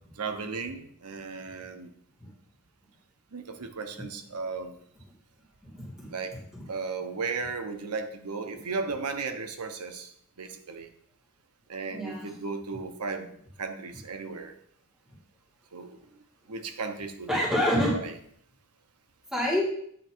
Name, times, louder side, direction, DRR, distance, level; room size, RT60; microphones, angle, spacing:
voice 1, 0.2-1.9 3.3-4.8 6.1-6.4 6.7-10.1 10.4-10.9 11.7-13.3 13.6-14.5 15.7-16.0 16.5-17.4 17.9-18.1, right 4 dB, 85° right, 7 dB, 0.8 m, -35 dB
voice 2, 5.6-6.1 6.5-6.6 11.9-12.3 17.3-17.9 19.3-19.6, left 1 dB, 5° right, -5 dB, 2.1 m, -27 dB
8.6 x 3.4 x 4.5 m, 0.67 s
head